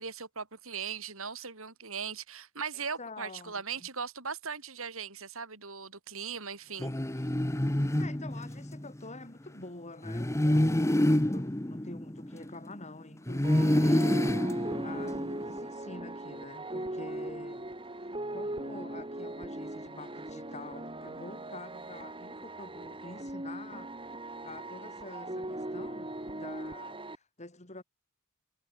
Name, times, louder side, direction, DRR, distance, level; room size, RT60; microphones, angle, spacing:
voice 1, 0.0-6.9, right 6 dB, 65° right, 5.9 m, -39 dB
voice 2, 2.7-3.9 8.0-14.4 14.8-17.7 18.3-23.9 24.4-27.8, left 2 dB, 30° left, 4.4 m, -47 dB
sound 1, 6.8-8.9 10.0-12.8 13.3-15.5, left 1 dB, 15° left, 1.0 m, -28 dB
sound 2, 13.4-27.2, right 1 dB, 25° right, 7.9 m, -39 dB
head